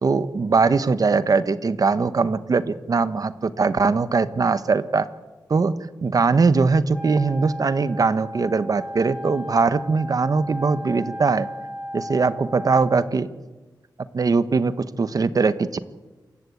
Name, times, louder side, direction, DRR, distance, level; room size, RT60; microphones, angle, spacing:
voice 1, 0.0-5.1 5.5-5.7 6.0-11.5 11.9-13.3 14.1-15.8, right 4 dB, 50° right, 14 dB, 1.2 m, -21 dB
Wind instrument woodwind instrument, 6.9-13.1, equal, 5° right, 7.3 m, -36 dB
27.5 x 15.0 x 8.6 m, 1.2 s
wide cardioid pair, 125°, 8 cm